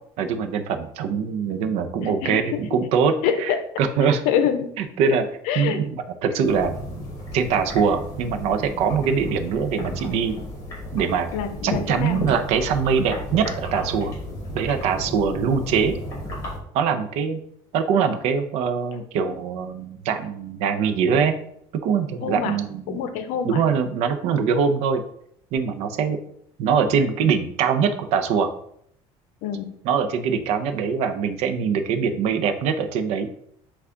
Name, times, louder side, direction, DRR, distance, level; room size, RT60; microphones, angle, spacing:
voice 1, 0.2-3.1 3.4-4.2 4.8-5.2 5.6-6.8 7.3-10.4 10.9-11.3 11.6-14.1 14.5-16.0 16.7-17.4 17.7-21.3 21.8-23.0 23.4-25.0 25.5-26.2 26.6-28.5 29.8-33.3, right 6 dB, 60° right, 8 dB, 0.5 m, -23 dB
voice 2, 2.0-2.6 3.2-3.7 4.2-4.7 5.1-5.2 5.5-5.8 11.3-12.2 22.2-22.6 22.9-23.6 29.4-29.7, left 8 dB, 70° left, 9 dB, 0.6 m, -25 dB
sound 1, 6.4-16.6, left 1 dB, 25° left, 1.5 m, -33 dB
5.7 x 2.4 x 3.8 m, 0.68 s
cardioid pair, 170°, 12 cm